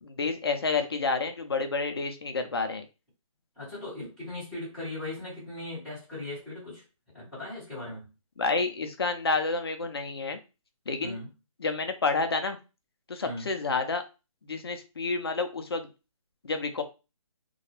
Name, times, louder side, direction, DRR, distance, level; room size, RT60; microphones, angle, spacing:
voice 1, 0.0-2.8 8.4-10.4 10.9-11.2 11.6-12.6 13.1-14.0 14.5-15.9 16.4-16.8, left 4 dB, 45° left, 7 dB, 0.4 m, -29 dB
voice 2, 3.6-6.8 7.1-8.1 11.0-11.3 13.2-13.5, left 2 dB, ahead, -15 dB, 0.8 m, -38 dB
2.2 x 2.0 x 2.8 m, 0.30 s
hypercardioid pair, 170°, 18 cm